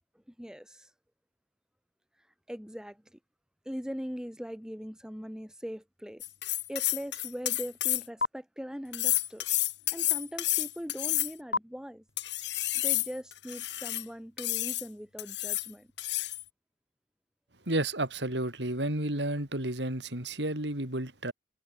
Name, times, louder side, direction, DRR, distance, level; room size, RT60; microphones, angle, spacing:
voice 1, 0.4-0.9 2.5-3.2 3.7-6.2 6.7-9.4 9.9-12.0 12.8-15.9, equal, 5° right, 4.0 m, -40 dB
sound 1, 6.2-8.3 8.9-11.6 12.2-14.0 14.4-14.9 15.2-15.7 16.0-16.4, left 14 dB, 80° left, 3.5 m, -30 dB
voice 2, 17.7-21.3, right 1 dB, 75° right, 5.0 m, -31 dB
head